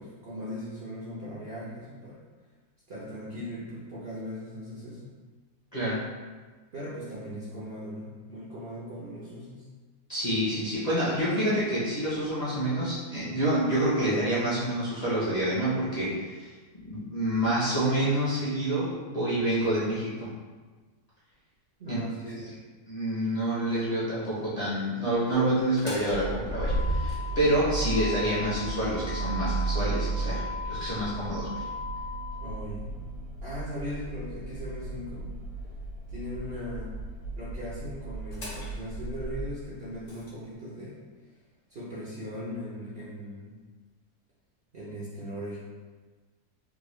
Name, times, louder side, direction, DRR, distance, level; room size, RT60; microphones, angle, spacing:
voice 1, 0.0-2.2 2.9-5.1 6.7-9.6 21.8-22.5 32.4-33.0 33.4-35.3 36.1-37.0 37.4-41.0 41.7-43.6 44.7-45.6, equal, 50° right, -9 dB, 0.7 m, -39 dB
voice 2, 5.7-6.0 10.1-16.5 16.7-20.3 21.9-22.3 22.9-31.6, right 1 dB, 30° left, -11 dB, 0.7 m, -28 dB
Motor vehicle (road), 25.6-40.3, right 2 dB, 55° left, 1.2 m, -34 dB
3.7 x 2.2 x 3.2 m, 1.4 s
omnidirectional pair, 1.7 m